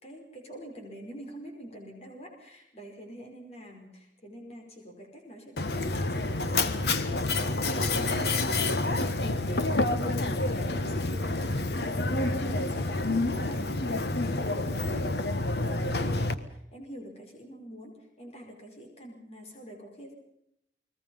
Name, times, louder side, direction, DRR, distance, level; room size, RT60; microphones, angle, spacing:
voice 1, 0.0-20.1, equal, 35° left, 2 dB, 5.3 m, -46 dB
Mechanisms, 5.6-16.3, left 2 dB, 70° left, 1.5 m, -28 dB
30.0 x 21.0 x 5.6 m, 0.77 s
head